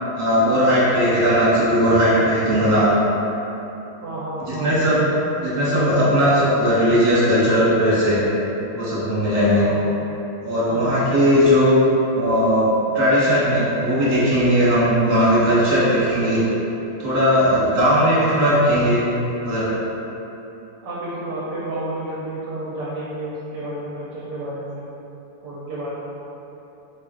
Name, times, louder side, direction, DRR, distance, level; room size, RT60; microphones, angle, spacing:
voice 1, 0.2-2.9 4.5-5.1 5.4-8.2 8.7-9.6 10.4-11.7 12.1-16.4 17.0-19.0 19.4-19.7, equal, 35° right, -10 dB, 1.2 m, -18 dB
voice 2, 4.0-4.7 9.6-9.9 10.6-10.9 20.8-24.8 25.4-25.9, right 1 dB, 70° right, -8 dB, 1.1 m, -31 dB
4.1 x 2.4 x 3.6 m, 3.0 s
omnidirectional pair, 2.2 m